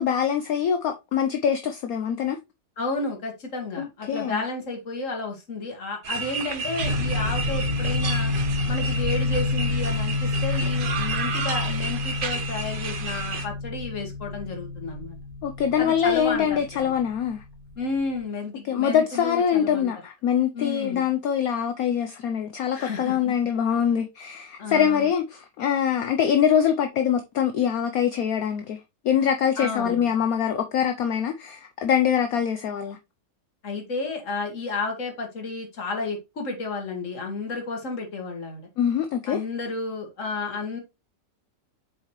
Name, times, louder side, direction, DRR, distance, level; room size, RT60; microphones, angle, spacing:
voice 1, 0.0-2.4 3.8-4.4 15.4-17.4 18.7-28.8 29.0-33.0 38.8-39.4, left 8 dB, 65° left, 0.9 m, -24 dB
voice 2, 2.8-8.3 8.7-15.2 15.8-16.9 17.8-19.9 20.5-21.0 22.7-23.2 24.6-25.1 29.6-30.1 33.6-38.7 39.3-40.8, left 3 dB, 45° left, 2.0 m, -32 dB
sound 1, 6.0-13.5, right 5 dB, 60° right, 0.5 m, -32 dB
sound 2, 6.8-18.1, left 3 dB, 35° right, 1.7 m, -29 dB
7.4 x 4.2 x 3.1 m
omnidirectional pair, 1.9 m